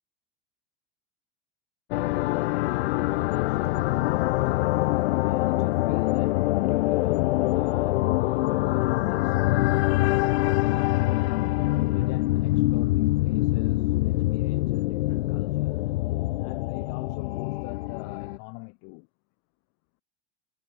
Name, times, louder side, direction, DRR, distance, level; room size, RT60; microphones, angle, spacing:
sound 1, 1.9-18.4, left 19 dB, 75° left, 0.6 m, -24 dB
voice 1, 2.8-16.0 16.4-19.1, left 36 dB, 60° left, 4.7 m, -42 dB
hypercardioid pair, 95°, 32 cm